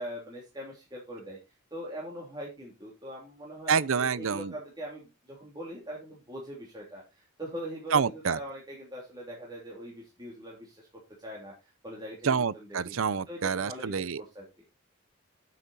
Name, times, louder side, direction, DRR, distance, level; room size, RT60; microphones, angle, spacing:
voice 1, 0.0-1.4 1.7-10.9 11.2-13.0 13.3-14.6, equal, 20° right, 3.1 m, -42 dB
voice 2, 3.7-4.5 7.9-8.4 12.2-14.2, right 6 dB, 70° right, 0.6 m, -27 dB
9.1 x 8.3 x 4.2 m
head